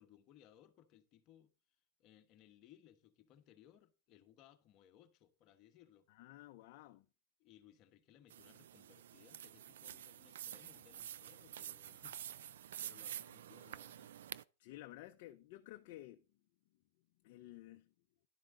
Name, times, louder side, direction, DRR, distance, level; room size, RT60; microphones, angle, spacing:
voice 1, 0.0-1.5 2.0-6.1 7.4-14.2, left 11 dB, 35° left, 1.2 m, -65 dB
voice 2, 6.1-7.1 14.6-16.2 17.2-17.9, left 16 dB, 50° left, 0.6 m, -53 dB
sound 1, 8.3-14.4, right 11 dB, 80° right, 0.4 m, -49 dB
11.5 x 7.6 x 3.8 m
supercardioid pair, 150°, 0 cm